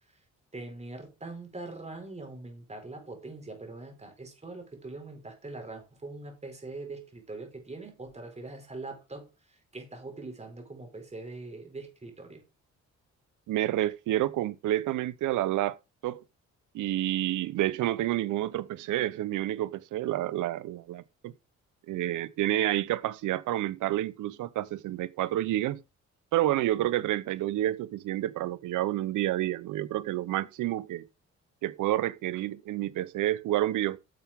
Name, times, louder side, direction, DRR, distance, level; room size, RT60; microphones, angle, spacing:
voice 1, 0.5-12.4, right 2 dB, 20° right, 4.8 m, -42 dB
voice 2, 13.5-15.8 16.0-16.2 16.7-21.3 21.9-25.8 26.3-31.0 31.6-34.0, right 14 dB, 85° right, 0.9 m, -29 dB
10.5 x 7.1 x 3.7 m
cardioid pair, 90°, 30 cm